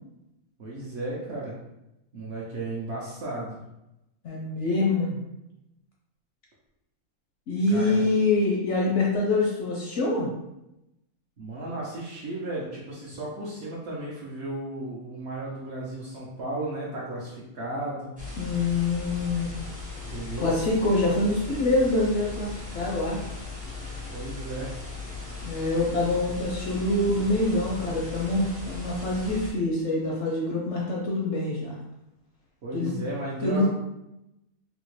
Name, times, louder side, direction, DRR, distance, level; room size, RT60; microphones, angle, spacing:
voice 1, 0.6-1.6 2.1-3.6 7.7-8.0 11.4-18.2 20.1-20.5 24.1-24.7 32.6-33.7, right 2 dB, 55° right, -5 dB, 0.7 m, -34 dB
voice 2, 4.2-5.2 7.5-10.3 18.4-19.5 20.4-23.3 25.4-31.8 32.7-33.0 33.4-33.7, left 2 dB, 65° left, -3 dB, 0.7 m, -25 dB
sound 1, 18.2-29.5, left 3 dB, 10° right, 0.4 m, -38 dB
3.5 x 2.1 x 3.1 m, 0.91 s
omnidirectional pair, 1.6 m